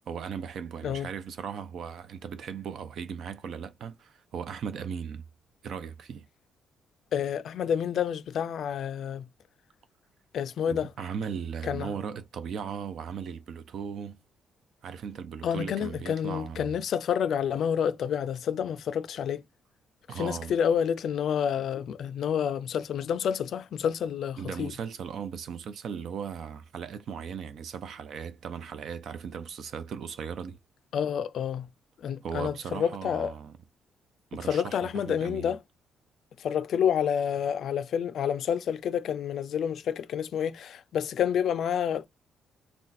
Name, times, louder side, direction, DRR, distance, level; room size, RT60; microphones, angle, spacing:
voice 1, 0.1-5.2 5.6-6.3 10.7-14.2 14.8-16.8 20.1-20.5 24.4-30.6 32.2-33.6 34.3-35.5, right 7 dB, 65° right, 0.5 m, -37 dB
voice 2, 7.1-9.3 10.3-10.9 11.7-11.9 15.4-19.4 20.2-24.7 30.9-31.7 32.0-33.3 34.5-35.6 36.4-42.1, left 8 dB, 65° left, 0.3 m, -29 dB
2.5 x 2.2 x 4.0 m
cardioid pair, 90°, 0 cm